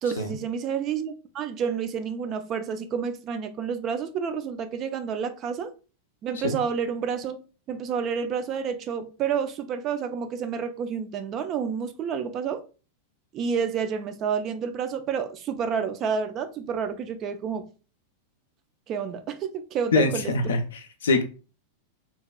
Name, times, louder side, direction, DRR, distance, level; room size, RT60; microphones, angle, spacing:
voice 1, 0.0-5.7 6.2-7.4 7.7-12.6 13.3-17.7 18.9-20.3, right 7 dB, 35° right, 0.3 m, -29 dB
voice 2, 19.9-21.2, left 3 dB, 65° left, 0.4 m, -24 dB
2.7 x 2.2 x 2.3 m
figure-of-eight pair, 90°, 0 cm